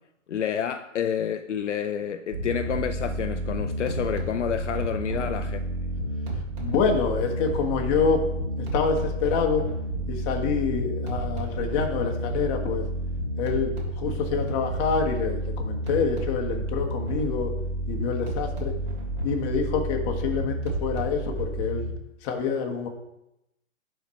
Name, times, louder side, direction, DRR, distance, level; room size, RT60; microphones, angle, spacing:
voice 1, 0.3-5.6, left 8 dB, 65° left, 10 dB, 0.7 m, -29 dB
sound 1, 2.3-21.9, right 1 dB, 40° right, 3.2 m, -30 dB
voice 2, 5.1-5.4 6.6-8.2 8.6-9.7 10.1-12.8 13.4-17.5 17.9-18.7 19.2-21.9 22.2-22.9, left 5 dB, 25° left, 2 dB, 1.4 m, -27 dB
11.0 x 4.6 x 4.3 m, 0.87 s
figure-of-eight pair, 130°, 39 cm